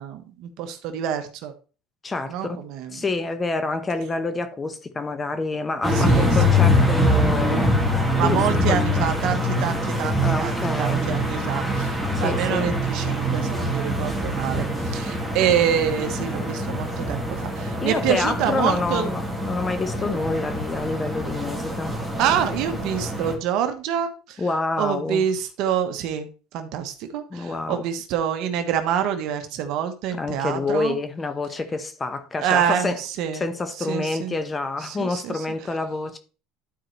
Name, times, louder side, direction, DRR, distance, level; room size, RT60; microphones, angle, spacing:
voice 1, 0.0-1.5 2.3-3.0 5.9-6.3 8.1-19.1 22.2-24.4 24.8-26.3 26.5-31.0 32.4-33.5 33.9-34.3 34.8-35.4, right 9 dB, 65° right, 1.1 m, -26 dB
voice 2, 2.0-2.6 2.9-7.8 8.1-8.4 8.7-9.1 10.2-11.1 12.1-12.7 17.8-22.0 24.4-25.3 27.3-27.9 30.1-33.0 33.3-36.2, left 3 dB, 20° left, 1.0 m, -27 dB
sound 1, 5.8-23.4, equal, ahead, 2.0 m, -24 dB
12.0 x 4.4 x 3.2 m
supercardioid pair, 110°, 0 cm